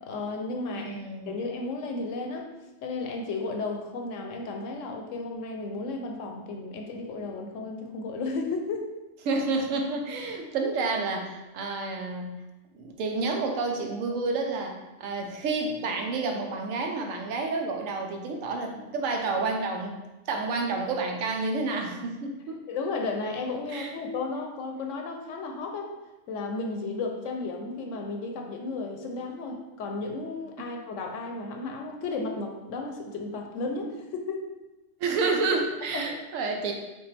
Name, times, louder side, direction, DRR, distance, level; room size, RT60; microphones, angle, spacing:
voice 1, 0.0-1.0 1.3-2.5 2.8-8.9 22.5-25.9 26.3-34.5 35.9-36.1, left 3 dB, 75° left, 3 dB, 0.9 m, -33 dB
voice 2, 0.6-1.3 9.3-12.3 12.7-19.9 20.3-22.7 23.7-23.9 35.0-36.7, right 3 dB, 90° right, 3 dB, 1.0 m, -29 dB
5.2 x 2.4 x 3.3 m, 1.0 s
omnidirectional pair, 1.3 m